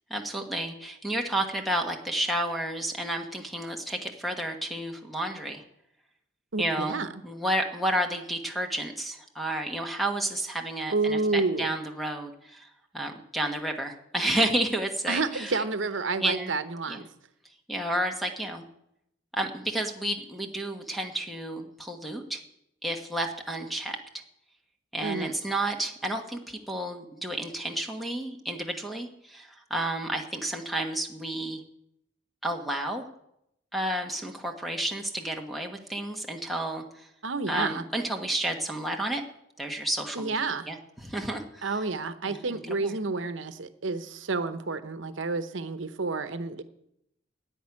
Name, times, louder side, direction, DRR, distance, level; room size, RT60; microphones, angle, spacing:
voice 1, 0.1-5.6 6.6-12.7 12.9-15.6 16.2-16.5 16.9-17.0 17.7-18.6 19.3-22.4 22.8-24.0 24.9-31.6 32.4-33.1 33.7-37.1 37.5-39.2 39.6-41.8 42.3-43.0, right 1 dB, ahead, 3 dB, 1.3 m, -31 dB
voice 2, 6.5-7.1 10.9-11.7 15.1-17.0 25.0-25.4 37.2-37.8 40.2-40.7 41.6-46.6, right 3 dB, 80° right, 11 dB, 0.9 m, -30 dB
11.0 x 8.3 x 9.7 m, 0.80 s
head